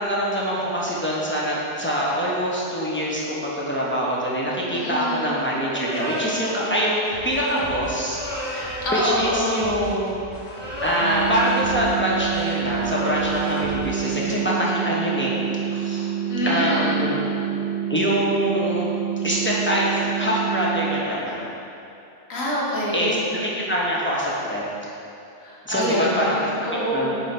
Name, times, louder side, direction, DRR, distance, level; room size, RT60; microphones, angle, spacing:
voice 1, 0.0-10.2 10.8-15.3 15.7-16.1 16.5-17.2 17.9-18.9 19.2-21.4 22.9-24.6 25.6-26.5 26.9-27.2, equal, 10° left, -6 dB, 0.7 m, -24 dB
voice 2, 4.7-5.3 8.8-9.7 16.3-17.1 22.3-23.2 25.4-27.2, equal, 85° left, -5 dB, 1.6 m, -26 dB
sound 1, 5.7-6.6 8.0-9.1 10.4-11.7 12.7-13.7, equal, 10° right, 1.1 m, -31 dB
sound 2, 7.1-13.9, left 1 dB, 35° left, 1.1 m, -40 dB
sound 3, 11.0-21.0, right 9 dB, 60° right, 1.1 m, -27 dB
9.0 x 3.0 x 4.3 m, 2.8 s
omnidirectional pair, 1.4 m